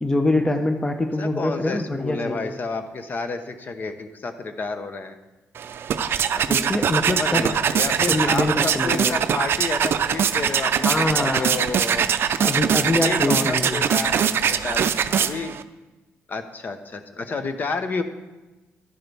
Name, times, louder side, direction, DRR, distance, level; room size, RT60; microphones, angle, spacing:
voice 1, 0.0-2.5 6.5-7.5 8.1-9.2 10.8-11.6 12.4-13.9, left 2 dB, 15° left, 6 dB, 0.7 m, -24 dB
voice 2, 1.2-5.2 6.3-6.5 7.1-12.1 12.9-15.6 16.3-18.0, left 3 dB, 40° left, 8 dB, 0.9 m, -30 dB
sound 1, 5.6-15.6, right 8 dB, 55° right, 0.5 m, -22 dB
11.5 x 10.0 x 3.4 m, 1.1 s
cardioid pair, 105°, 5 cm